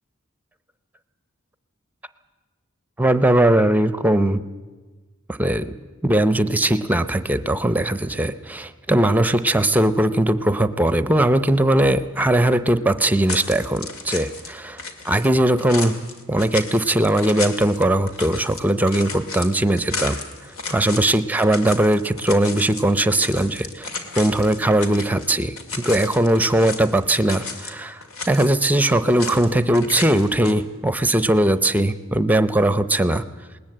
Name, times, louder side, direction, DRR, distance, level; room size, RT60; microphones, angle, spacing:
voice 1, 3.0-4.4 5.3-5.8 6.0-16.0 16.3-20.2 20.7-23.9 24.2-33.2, right 1 dB, 10° right, 13 dB, 0.6 m, -19 dB
sound 1, 13.3-14.5 14.8-25.3 25.6-27.7 28.0-29.5 29.7-30.5, left 4 dB, 85° left, 2.1 m, -33 dB
20.0 x 19.0 x 7.9 m, 1.3 s
head